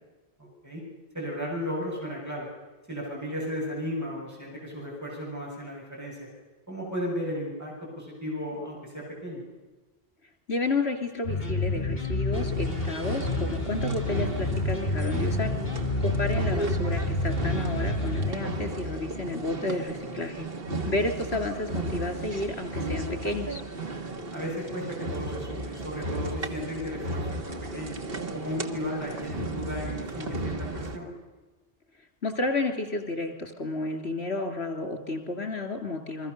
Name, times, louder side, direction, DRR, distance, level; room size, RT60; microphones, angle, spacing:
voice 1, 0.4-0.8 1.1-2.5 2.9-6.3 6.7-9.4 24.3-28.0 28.3-31.1, equal, 15° right, -3 dB, 7.2 m, -35 dB
voice 2, 10.5-15.5 16.0-20.5 20.9-23.6 32.2-36.3, left 2 dB, 90° left, 5 dB, 3.3 m, -31 dB
sound 1, 11.2-18.3, left 2 dB, 65° left, 3.3 m, -29 dB
sound 2, 12.3-31.0, right 1 dB, 65° right, 1.8 m, -34 dB
28.5 x 22.5 x 6.7 m, 1.2 s
omnidirectional pair, 1.1 m